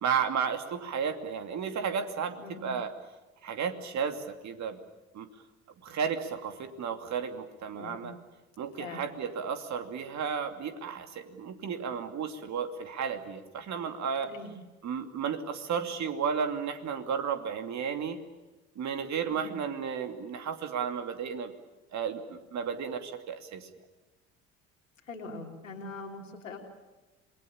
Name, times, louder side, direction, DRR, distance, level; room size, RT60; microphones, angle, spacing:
voice 1, 0.0-2.9 3.4-4.8 5.1-5.3 5.8-8.1 8.6-14.3 14.8-18.2 18.7-21.5 21.9-23.7, right 6 dB, 45° right, 7 dB, 2.8 m, -33 dB
voice 2, 2.4-2.7 7.7-8.1 8.8-9.1 14.3-14.5 19.3-19.5 25.0-26.6, left 3 dB, 85° left, 2 dB, 3.4 m, -42 dB
27.0 x 21.5 x 8.7 m, 1.1 s
figure-of-eight pair, 60°, 38 cm